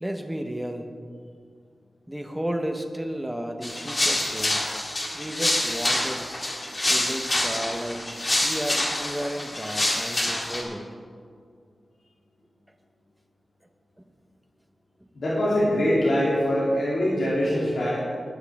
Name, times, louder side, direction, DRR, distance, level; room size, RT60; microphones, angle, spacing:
voice 1, 0.0-0.9 2.1-4.7 5.1-6.3 6.9-8.0 8.3-11.0, right 1 dB, 5° right, 5 dB, 1.0 m, -33 dB
sound 1, 3.6-10.6, left 1 dB, 30° left, 2.1 m, -26 dB
voice 2, 15.2-18.0, equal, 80° left, -8 dB, 2.9 m, -23 dB
19.0 x 9.4 x 3.6 m, 2.1 s
wide cardioid pair, 130°, 0 cm